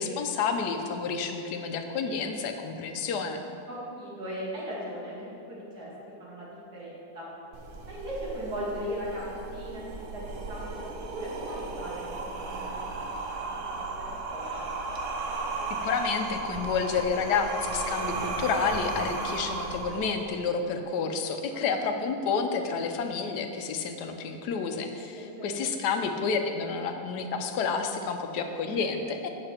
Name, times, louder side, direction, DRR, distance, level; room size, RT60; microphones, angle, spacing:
voice 1, 0.0-3.4 15.7-29.3, left 5 dB, 80° left, 6 dB, 1.3 m, -30 dB
voice 2, 3.7-5.9 6.2-7.3 7.8-13.0 13.3-14.7 21.5-21.8 25.1-25.7 28.7-28.8, equal, 75° right, -7 dB, 2.7 m, -38 dB
sound 1, 7.5-20.5, right 3 dB, 60° right, 0.9 m, -35 dB
8.4 x 6.8 x 4.4 m, 2.8 s
omnidirectional pair, 1.7 m